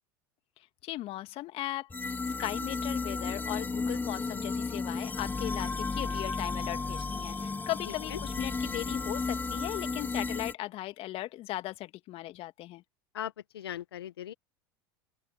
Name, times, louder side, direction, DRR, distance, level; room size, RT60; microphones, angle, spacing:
voice 1, 0.8-2.1 2.4-12.8, left 16 dB, 50° left, 2.5 m, -38 dB
sound 1, 1.9-10.5, left 4 dB, 15° left, 1.3 m, -33 dB
voice 2, 13.1-14.3, left 11 dB, 80° left, 1.4 m, -38 dB
open air
hypercardioid pair, 85°, 13 cm